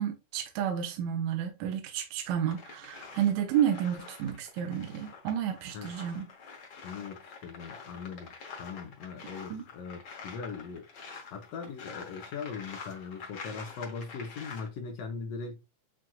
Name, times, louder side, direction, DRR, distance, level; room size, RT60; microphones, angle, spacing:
voice 1, 0.0-6.3 9.5-9.6, right 9 dB, 75° right, 2.0 m, -31 dB
sound 1, 2.5-14.7, left 5 dB, 85° left, 0.9 m, -47 dB
voice 2, 6.8-10.8 11.3-15.6, left 5 dB, 70° left, 1.7 m, -40 dB
7.5 x 2.5 x 2.3 m
omnidirectional pair, 3.5 m